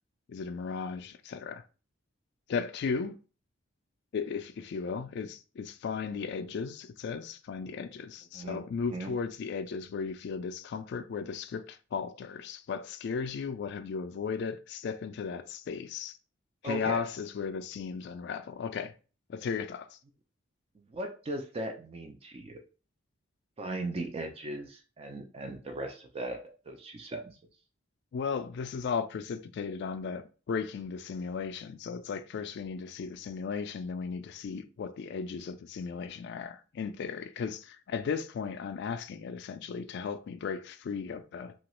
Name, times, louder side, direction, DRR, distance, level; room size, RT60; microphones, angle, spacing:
voice 1, 0.3-1.6 2.5-3.2 4.1-16.2 16.6-18.9 19.3-20.0 28.1-41.5, left 5 dB, 55° left, 0.3 m, -36 dB
voice 2, 16.6-17.0 20.9-22.6 23.6-27.3, right 1 dB, 30° right, 0.4 m, -38 dB
2.9 x 2.3 x 3.0 m
head